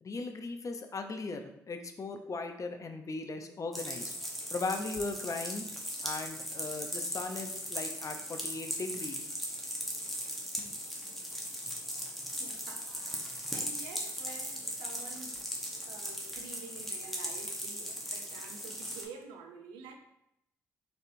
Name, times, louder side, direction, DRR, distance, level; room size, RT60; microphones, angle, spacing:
voice 1, 0.0-4.1 4.5-5.7 6.0-9.3 10.6-10.7, left 3 dB, 45° left, 6 dB, 0.6 m, -38 dB
sound 1, 3.7-19.0, equal, ahead, 1.0 m, -38 dB
voice 2, 12.4-15.3 15.8-19.9, right 5 dB, 85° right, 4 dB, 0.4 m, -49 dB
4.1 x 3.4 x 2.5 m, 0.80 s
hypercardioid pair, 40°, 8 cm